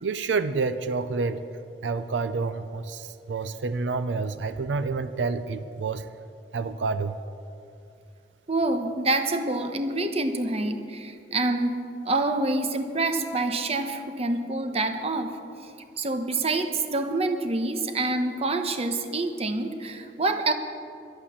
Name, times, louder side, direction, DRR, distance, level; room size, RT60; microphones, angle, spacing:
voice 1, 0.0-1.4 1.8-6.1 6.5-7.2, right 4 dB, 90° right, 11 dB, 0.5 m, -28 dB
voice 2, 8.5-15.4 16.0-20.5, right 2 dB, 35° right, 7 dB, 0.9 m, -27 dB
11.5 x 11.5 x 7.1 m, 2.7 s
head